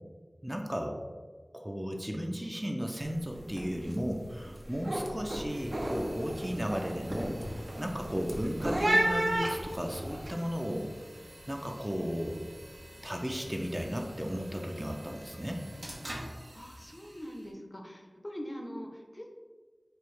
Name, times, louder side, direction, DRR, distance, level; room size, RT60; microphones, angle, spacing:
voice 1, 0.4-1.0 1.5-10.9 11.5-12.4 13.0-15.6, equal, 15° right, 1 dB, 0.4 m, -35 dB
sound 1, 3.0-3.2 3.5-3.9 4.3-10.3, right 1 dB, 65° right, 0.6 m, -32 dB
sound 2, 5.5-17.5, equal, 85° right, 1.0 m, -48 dB
voice 2, 16.5-19.3, equal, 40° left, 1 dB, 0.6 m, -43 dB
4.5 x 2.3 x 3.1 m, 1.4 s
wide cardioid pair, 40°, 0 cm